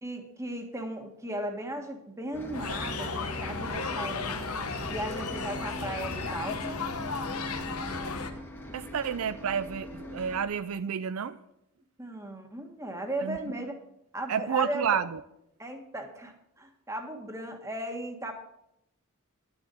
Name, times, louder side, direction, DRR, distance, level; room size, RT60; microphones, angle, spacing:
voice 1, 0.0-4.5 4.9-6.8 12.0-13.8 14.1-15.0 15.6-18.3, right 1 dB, 15° right, 1.6 m, -36 dB
Bus, 2.3-10.4, equal, 10° left, 1.4 m, -41 dB
sound 1, 2.5-8.3, left 4 dB, 85° left, 1.2 m, -34 dB
voice 2, 8.7-11.4 13.2-13.4 14.3-15.2, right 7 dB, 70° right, 0.5 m, -30 dB
11.5 x 6.7 x 7.7 m
head